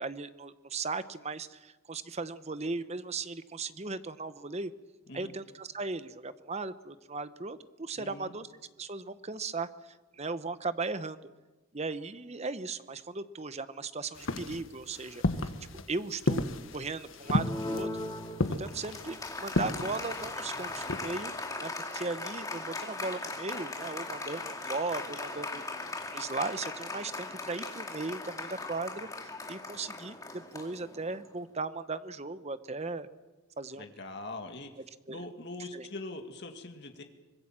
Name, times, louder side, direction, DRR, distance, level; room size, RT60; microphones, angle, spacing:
voice 1, 0.0-4.7 5.1-8.5 8.8-11.2 11.7-15.5 15.9-16.4 16.7-17.9 18.6-21.3 21.6-25.6 26.1-33.1 33.6-33.9 35.1-35.2 35.7-35.9, right 3 dB, 30° right, 13 dB, 0.8 m, -37 dB
voice 2, 8.0-8.3 33.8-34.7 35.1-37.0, left 2 dB, 55° left, 5 dB, 2.1 m, -42 dB
sound 1, 14.1-21.2, left 2 dB, 70° left, 1.3 m, -33 dB
Applause, 17.2-31.3, left 2 dB, 15° left, 2.2 m, -39 dB
25.0 x 21.0 x 7.4 m, 1.2 s
head